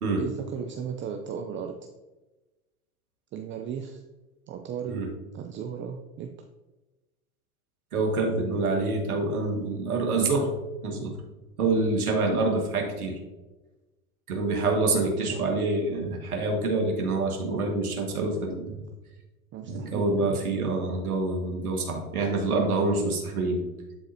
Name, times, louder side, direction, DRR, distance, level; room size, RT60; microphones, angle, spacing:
voice 1, 0.2-1.8 3.3-4.0 4.5-5.0 5.3-6.3 15.3-15.5 19.5-20.4, right 7 dB, 30° right, 4 dB, 0.5 m, -35 dB
voice 2, 7.9-10.5 10.8-11.2 11.6-13.2 14.3-18.9 19.7-23.6, right 3 dB, 85° right, 1 dB, 1.8 m, -26 dB
11.5 x 4.0 x 2.8 m, 1.1 s
hypercardioid pair, 100°, 43 cm